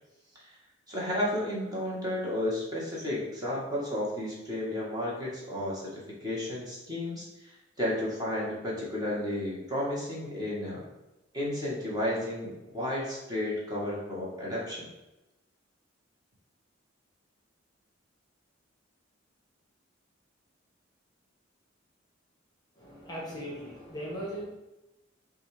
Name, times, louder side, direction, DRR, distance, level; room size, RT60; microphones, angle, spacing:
voice 1, 0.9-5.9 6.2-7.5 7.8-10.8 11.3-14.9, left 1 dB, 20° right, -5 dB, 1.2 m, -32 dB
voice 2, 22.7-24.4, equal, 20° left, -3 dB, 0.9 m, -38 dB
6.1 x 2.4 x 3.2 m, 0.97 s
head